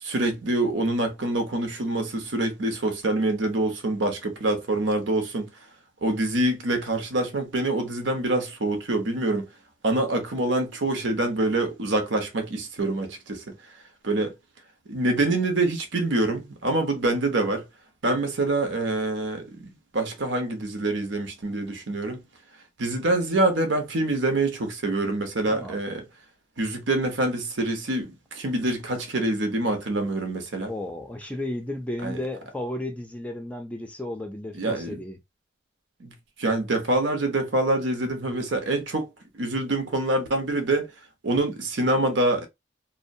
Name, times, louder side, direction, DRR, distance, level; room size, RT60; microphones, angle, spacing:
voice 1, 0.0-5.5 6.0-9.5 9.8-13.5 14.0-14.3 14.9-17.6 18.0-22.2 22.8-26.0 26.6-30.7 32.0-32.2 34.5-35.0 36.0-40.9 41.2-42.5, right 2 dB, 80° right, 0.8 m, -25 dB
voice 2, 25.4-25.8 30.7-35.2, left 1 dB, 5° left, 0.4 m, -33 dB
2.6 x 2.1 x 2.6 m
head